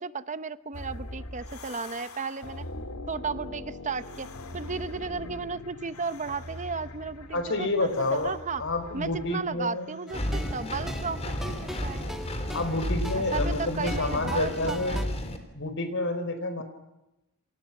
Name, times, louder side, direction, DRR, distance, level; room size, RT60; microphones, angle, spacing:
voice 1, 0.0-2.7 3.1-4.3 4.5-8.6 8.9-12.1 13.1-15.1, right 5 dB, 35° right, 13 dB, 0.9 m, -34 dB
sound 1, 0.7-15.3, left 1 dB, 90° left, 2.3 m, -43 dB
voice 2, 7.3-10.0 12.5-15.0 15.5-16.6, left 2 dB, 60° left, 9 dB, 4.6 m, -29 dB
Engine, 10.1-15.4, equal, 30° left, 3.6 m, -32 dB
sound 2, 10.1-15.0, equal, ahead, 1.8 m, -41 dB
28.5 x 27.0 x 6.0 m, 0.94 s
head